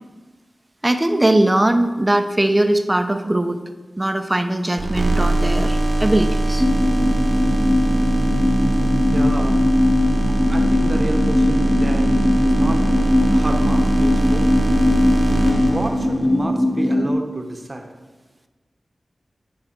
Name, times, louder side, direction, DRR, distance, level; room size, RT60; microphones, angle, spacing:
voice 1, 0.8-3.6 4.0-6.6, right 1 dB, 20° right, 8 dB, 0.7 m, -20 dB
sound 1, 4.8-16.4, right 2 dB, 65° right, 1.3 m, -21 dB
sound 2, 6.6-17.1, left 1 dB, 10° left, 0.8 m, -20 dB
voice 2, 9.1-9.6 10.5-12.9 13.3-14.5 15.4-17.9, right 1 dB, 40° right, 4 dB, 1.1 m, -29 dB
8.9 x 4.8 x 4.6 m, 1.2 s
cardioid pair, 50°, 0 cm